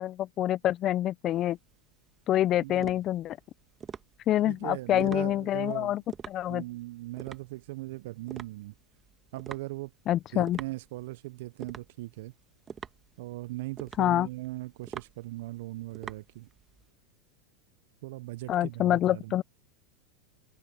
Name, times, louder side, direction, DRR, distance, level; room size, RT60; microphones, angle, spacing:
voice 1, 0.0-1.6 2.3-3.4 4.3-6.0 6.3-6.6 10.1-10.6 14.0-14.3 18.5-19.4, left 13 dB, 40° left, 0.5 m, -26 dB
sound 1, 1.3-16.9, right 7 dB, 25° right, 1.7 m, -46 dB
voice 2, 2.5-3.0 4.4-6.0 6.5-8.7 9.3-9.9 10.3-12.3 13.2-16.5 18.0-19.4, right 19 dB, 65° right, 0.7 m, -39 dB
hypercardioid pair, 100°, 0 cm